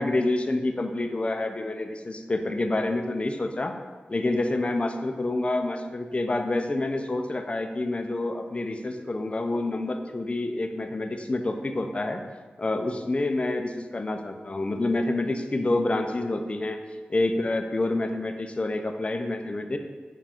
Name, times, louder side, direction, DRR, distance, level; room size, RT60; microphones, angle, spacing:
voice 1, 0.0-3.8 4.1-12.2 12.6-16.8 17.1-19.8, left 2 dB, 35° left, 6 dB, 0.4 m, -28 dB
4.6 x 2.3 x 3.5 m, 1.4 s
cardioid pair, 50°, 4 cm